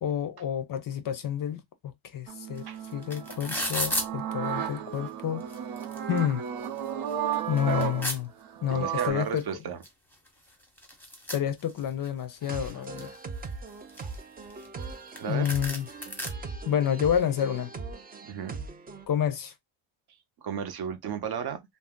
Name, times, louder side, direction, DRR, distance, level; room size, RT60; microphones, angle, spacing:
voice 1, 0.0-2.7 2.9-5.4 6.1-6.4 7.5-8.3 8.6-9.5 11.3-13.2 15.3-15.9 16.7-17.7 19.1-19.5, left 9 dB, 45° left, 0.5 m, -29 dB
sound 1, 2.3-9.1, right 9 dB, 80° right, 0.8 m, -34 dB
sound 2, 2.6-2.7 2.8-4.1 4.9-5.0 5.4-6.2 6.6-6.7 7.1-8.2 9.4-9.5 9.8-9.9 10.1-12.1 12.5-13.2 13.7-14.9 15.2-15.3 15.5-16.3, left 1 dB, 5° left, 0.7 m, -33 dB
voice 2, 8.7-9.8 12.7-12.8 14.0-14.1 15.2-15.5 18.2-18.6 20.4-21.6, right 8 dB, 50° right, 0.7 m, -34 dB
sound 3, 12.4-19.1, right 4 dB, 20° right, 0.4 m, -40 dB
2.6 x 2.0 x 3.5 m
cardioid pair, 115°, 50 cm